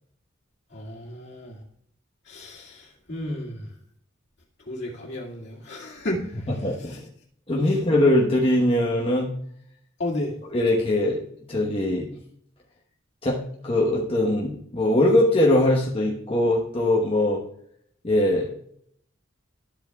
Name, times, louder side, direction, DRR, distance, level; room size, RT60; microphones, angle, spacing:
voice 1, 0.7-1.6 2.3-3.7 4.7-6.4 10.0-10.4, left 1 dB, 60° left, -2 dB, 2.1 m, -32 dB
voice 2, 6.6-7.0 7.5-9.3 10.5-11.2 11.5-12.1 13.2-17.4 18.0-18.5, left 1 dB, 30° left, -3 dB, 1.1 m, -21 dB
13.0 x 7.7 x 2.3 m, 0.68 s
head